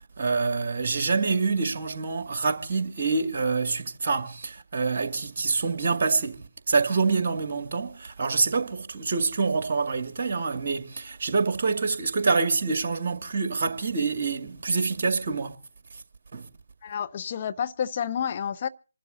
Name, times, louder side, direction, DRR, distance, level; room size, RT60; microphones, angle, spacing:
voice 1, 0.2-15.6 16.3-16.5, right 4 dB, 40° right, 2.1 m, -26 dB
voice 2, 16.8-18.7, left 8 dB, 35° left, 0.7 m, -30 dB
27.0 x 12.0 x 2.7 m
figure-of-eight pair, 145°, 0 cm